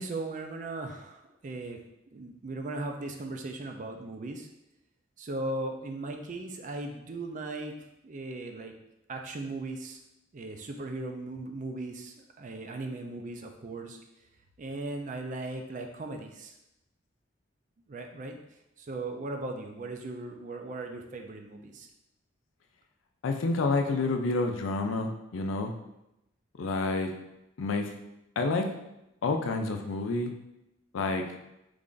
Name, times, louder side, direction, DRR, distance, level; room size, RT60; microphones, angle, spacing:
voice 1, 0.0-1.8 2.1-4.5 5.2-7.8 8.0-8.7 9.1-10.0 10.3-14.0 14.6-16.5 17.9-18.4 18.8-21.9, right 2 dB, 40° right, 4 dB, 0.4 m, -38 dB
voice 2, 23.2-25.7 26.6-27.1 27.6-27.9 28.4-28.7 29.2-30.3 30.9-31.3, left 3 dB, 85° left, 4 dB, 0.4 m, -28 dB
3.3 x 2.5 x 3.8 m, 0.88 s
head